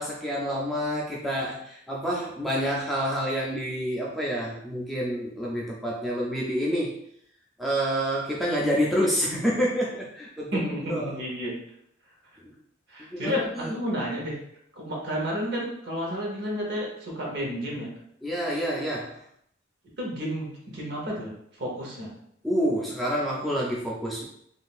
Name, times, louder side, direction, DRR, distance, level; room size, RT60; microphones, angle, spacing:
voice 1, 0.0-7.0 7.6-10.6 10.9-11.2 12.4-12.5 13.0-13.7 18.2-19.2 22.4-24.2, equal, ahead, -4 dB, 0.4 m, -28 dB
voice 2, 10.5-11.5 12.9-14.4 14.8-17.9 20.0-21.3 21.6-22.1, equal, 55° right, -2 dB, 1.0 m, -31 dB
3.6 x 2.6 x 2.4 m, 0.70 s
head